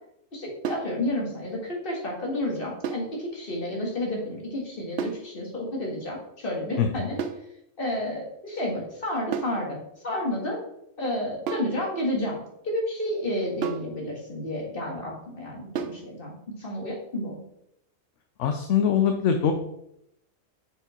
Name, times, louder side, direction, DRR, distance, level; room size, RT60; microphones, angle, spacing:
voice 1, 0.3-7.2 7.8-9.8 10.0-10.6 11.0-12.4 12.6-17.4, left 1 dB, 40° left, -2 dB, 2.2 m, -31 dB
sound 1, 0.6-1.0 2.8-3.1 5.0-5.3 7.2-7.5 9.3-9.6 11.5-11.8 13.6-13.9 15.8-16.1, right 7 dB, 60° right, 0.7 m, -31 dB
voice 2, 6.8-7.1 18.4-19.5, left 8 dB, 70° left, 5 dB, 0.9 m, -23 dB
6.6 x 4.7 x 4.4 m, 0.79 s
omnidirectional pair, 1.4 m